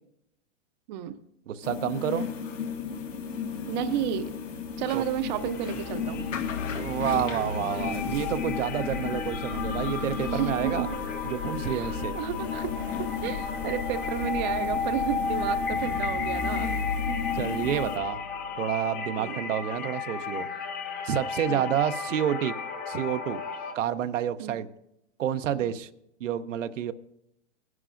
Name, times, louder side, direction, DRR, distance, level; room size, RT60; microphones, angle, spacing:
voice 1, 0.9-1.2 3.7-4.4 4.8-6.3 10.3-10.9 11.7-16.8 17.1-17.2 19.2-19.4 21.5-21.8 24.4-24.6 25.5-25.8, right 11 dB, 40° right, 10 dB, 0.6 m, -32 dB
voice 2, 1.5-2.2 4.9-5.0 6.7-10.9 11.3-12.2 17.3-18.2 18.6-20.5 21.0-22.5 22.9-23.4 23.7-24.7 25.2-25.9 26.2-26.9, right 10 dB, 85° right, 10 dB, 0.7 m, -29 dB
sound 1, 1.6-18.0, left 7 dB, 85° left, 1.7 m, -35 dB
sound 2, 2.8-18.7, left 5 dB, 50° left, 1.9 m, -39 dB
sound 3, 5.1-5.4 5.6-23.7, left 4 dB, 25° left, 1.0 m, -34 dB
19.0 x 11.0 x 2.5 m, 0.82 s
hypercardioid pair, 145°, 37 cm